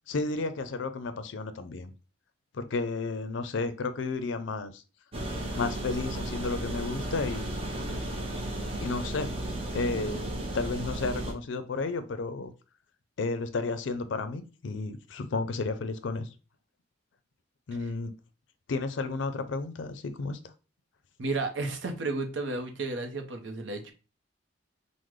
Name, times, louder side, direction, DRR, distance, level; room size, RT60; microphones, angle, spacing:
voice 1, 0.1-1.9 2.5-4.8 5.5-7.6 8.8-9.3 9.7-10.3 10.5-12.5 13.2-16.3 17.7-18.1 18.7-20.4, left 3 dB, 70° left, 10 dB, 0.4 m, -32 dB
sound 1, 5.1-11.3, right 1 dB, 30° right, 0.5 m, -34 dB
voice 2, 21.2-23.9, right 3 dB, 70° right, 6 dB, 0.6 m, -32 dB
3.6 x 2.1 x 3.1 m, 0.33 s
head